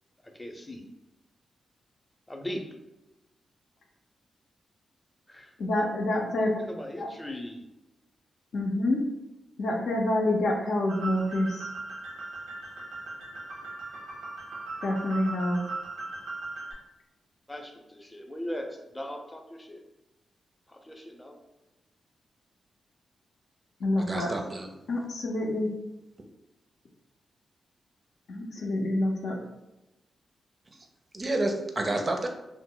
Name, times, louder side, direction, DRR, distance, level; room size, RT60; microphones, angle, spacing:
voice 1, 0.3-0.8 2.3-2.6 5.3-5.5 6.6-7.6 17.5-19.8 20.7-21.4 28.5-28.6, left 1 dB, 15° left, 3 dB, 0.6 m, -39 dB
voice 2, 5.6-6.5 7.0-7.1 8.5-9.0 9.6-11.7 14.8-15.6 23.8-24.3 24.9-25.7 28.3-29.4, left 1 dB, 70° left, 0 dB, 0.5 m, -27 dB
sound 1, 10.9-16.7, right 3 dB, 90° right, 0.8 m, -38 dB
voice 3, 24.0-24.7 31.1-32.3, right 2 dB, 40° right, 3 dB, 0.5 m, -29 dB
2.1 x 2.0 x 3.7 m, 0.97 s
supercardioid pair, 40°, 0 cm